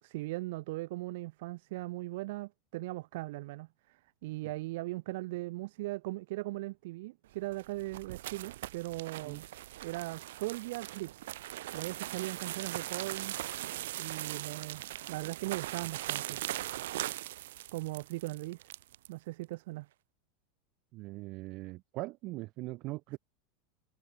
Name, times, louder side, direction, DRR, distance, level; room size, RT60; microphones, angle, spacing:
voice 1, 0.0-9.4 9.8-11.2 11.7-13.3 14.0-16.4 17.7-18.7 19.1-19.9, right 20 dB, 55° right, 2.7 m, -39 dB
sound 1, 7.4-19.1, right 15 dB, 75° right, 4.6 m, -40 dB
voice 2, 20.9-23.2, right 21 dB, 35° right, 4.4 m, -41 dB
supercardioid pair, 180°, 0 cm